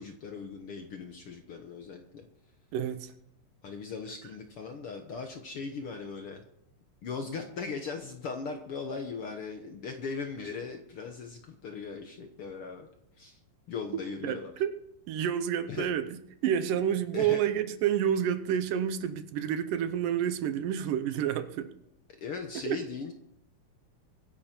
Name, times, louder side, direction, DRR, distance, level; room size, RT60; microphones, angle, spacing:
voice 1, 0.0-2.2 3.6-6.4 7.0-12.9 13.2-13.4 13.7-14.5 15.7-15.9 17.1-17.4 22.2-23.1, left 5 dB, 60° left, 5 dB, 1.6 m, -38 dB
voice 2, 2.7-3.1 14.2-14.8 15.1-16.1 16.4-21.7 22.7-22.8, right 9 dB, 80° right, 11 dB, 2.5 m, -29 dB
23.0 x 10.5 x 4.5 m, 0.77 s
omnidirectional pair, 3.8 m